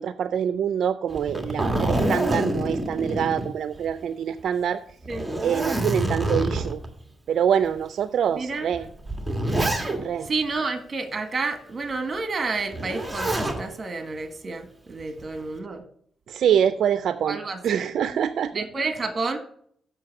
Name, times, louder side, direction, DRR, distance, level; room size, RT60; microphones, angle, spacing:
voice 1, 0.0-4.8 5.4-6.8 7.3-8.8 10.0-10.3 16.3-17.4 17.6-18.6, right 8 dB, 70° right, 12 dB, 0.4 m, -25 dB
Zipper (clothing), 1.1-4.0 4.4-4.5 5.0-6.9 7.6-7.8 8.7-10.3 12.7-13.6 15.0-15.5, right 1 dB, 10° right, 1.4 m, -26 dB
voice 2, 8.3-8.7 10.2-15.8 17.2-17.9 18.5-19.4, right 3 dB, 35° right, 7 dB, 1.5 m, -30 dB
7.6 x 6.4 x 6.4 m, 0.63 s
cardioid pair, 100°, 0 cm